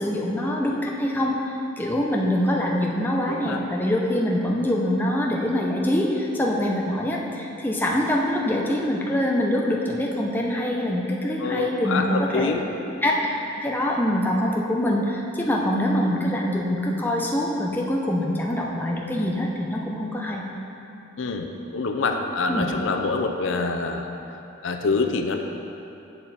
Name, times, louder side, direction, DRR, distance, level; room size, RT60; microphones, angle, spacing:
voice 1, 0.0-1.4 1.8-12.6 13.0-13.2 13.6-20.4 22.5-22.7, left 1 dB, 10° left, -2 dB, 0.6 m, -24 dB
voice 2, 3.3-3.6 11.4-12.6 21.2-24.1 24.6-25.4, left 3 dB, 70° left, 4 dB, 0.5 m, -26 dB
8.8 x 5.9 x 4.2 m, 2.9 s
head